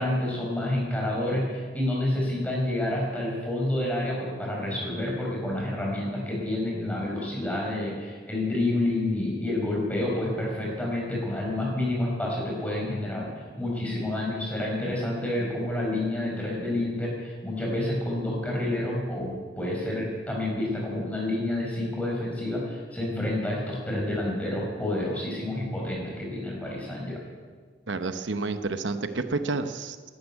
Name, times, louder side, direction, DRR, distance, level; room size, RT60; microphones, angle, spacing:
voice 1, 0.0-13.3 13.6-27.3, left 1 dB, 10° left, -3 dB, 5.2 m, -29 dB
voice 2, 27.9-30.1, right 3 dB, 85° right, 9 dB, 0.9 m, -30 dB
13.0 x 11.5 x 9.7 m, 1.5 s
head